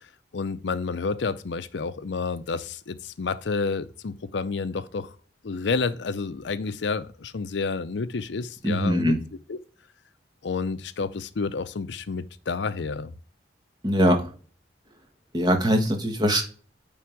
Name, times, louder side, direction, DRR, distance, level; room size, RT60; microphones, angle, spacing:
voice 1, 0.3-5.1 5.4-9.1 9.5-9.6 10.4-13.1, left 4 dB, 75° left, 0.5 m, -30 dB
voice 2, 8.6-9.2 13.8-14.3 15.3-16.4, equal, 20° right, 1.4 m, -22 dB
9.5 x 3.6 x 4.6 m
head